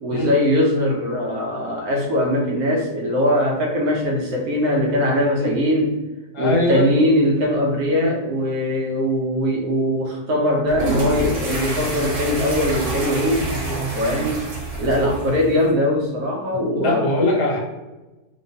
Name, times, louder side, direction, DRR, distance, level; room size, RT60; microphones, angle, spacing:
voice 1, 0.0-5.9 6.4-13.5 13.9-14.3 14.8-17.2, left 1 dB, 70° right, 0 dB, 1.0 m, -21 dB
voice 2, 6.3-6.9 7.9-8.1 13.6-13.8 14.1-14.3 16.8-17.6, left 1 dB, 75° left, -2 dB, 1.3 m, -22 dB
sound 1, 10.7-15.7, right 1 dB, 90° right, 1.5 m, -27 dB
3.0 x 2.2 x 2.6 m, 1.1 s
omnidirectional pair, 1.8 m